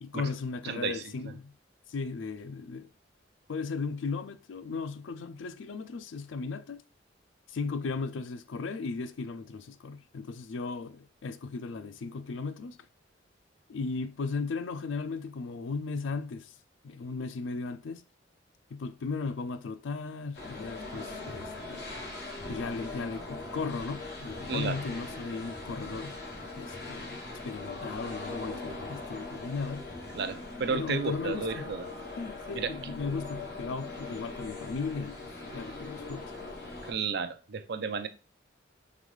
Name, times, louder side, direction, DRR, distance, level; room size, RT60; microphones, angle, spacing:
voice 1, 0.0-1.5 1.9-2.9 3.5-6.8 7.5-12.9 13.7-16.6 16.8-18.0 18.7-21.9 22.5-26.2 26.6-29.9 30.7-31.7 32.2-35.2 35.5-36.3, left 4 dB, 85° left, 0.4 m, -36 dB
voice 2, 0.6-1.0 24.5-24.8 30.1-31.9 32.5-32.9 36.8-38.1, right 5 dB, 60° right, 0.5 m, -33 dB
sound 1, 20.3-36.9, left 2 dB, 55° left, 1.2 m, -41 dB
3.9 x 3.5 x 3.2 m
head